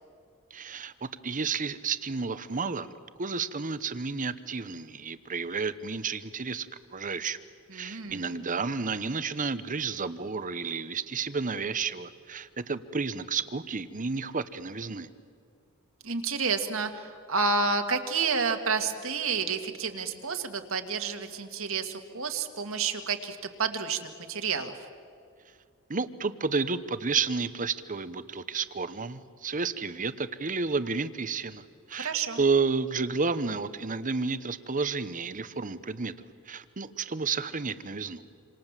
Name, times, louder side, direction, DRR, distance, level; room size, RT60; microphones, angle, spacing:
voice 1, 0.5-2.9 3.2-7.4 7.7-15.1 25.9-31.6 31.9-36.1 36.5-38.2, right 4 dB, 40° right, 13 dB, 1.0 m, -31 dB
voice 2, 7.7-8.4 16.0-24.0 24.3-24.7 32.0-32.4, right 4 dB, 65° right, 6 dB, 2.0 m, -30 dB
27.0 x 27.0 x 7.5 m, 2.3 s
head